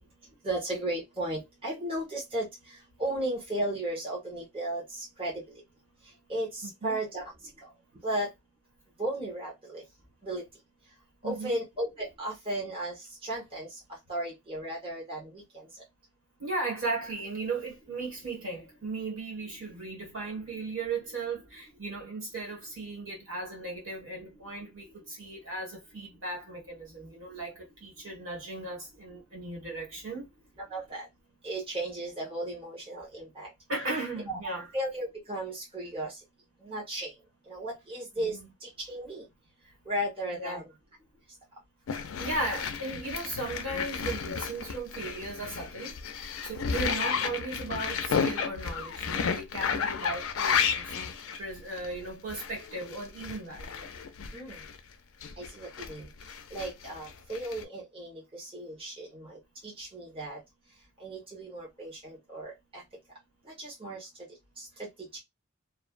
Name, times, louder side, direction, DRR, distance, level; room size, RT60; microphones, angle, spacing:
voice 1, 0.4-2.5 3.0-5.4 6.3-7.3 8.0-8.3 9.0-9.8 10.2-10.4 11.2-12.9 13.2-13.7 14.1-15.7 30.7-31.0 31.4-33.5 34.3-34.4 34.7-36.1 36.6-37.1 37.5-38.4 38.6-39.2 39.9-40.7 54.3-54.6 55.4-56.1 56.5-60.4 61.0-62.8 63.6-64.1 64.6-64.9, right 1 dB, 25° right, 1.0 m, -35 dB
voice 2, 6.6-7.0 11.2-11.6 16.4-30.3 33.7-34.7 38.3-38.5 40.3-40.6 42.2-50.9 51.4-53.9, right 2 dB, 85° right, 1.7 m, -36 dB
sound 1, 41.9-54.8 55.2-57.6, left 6 dB, 85° left, 0.4 m, -33 dB
2.5 x 2.2 x 2.4 m
head